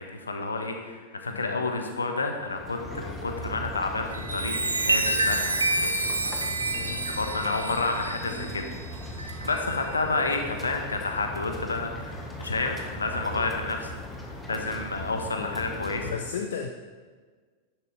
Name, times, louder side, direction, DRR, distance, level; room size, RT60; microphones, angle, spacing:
voice 1, 0.0-6.9 7.2-8.7 9.4-13.9 14.2-16.1, left 3 dB, 75° left, 4 dB, 1.2 m, -30 dB
voice 2, 1.3-1.6 6.7-7.1 16.0-16.7, left 6 dB, 60° left, 4 dB, 0.6 m, -34 dB
sound 1, 2.4-16.1, equal, 10° left, 1.4 m, -39 dB
Chime, 4.0-10.0 10.6-10.9, right 2 dB, 80° right, 0.8 m, -29 dB
11.0 x 10.5 x 3.3 m, 1.5 s
figure-of-eight pair, 90°, 0 cm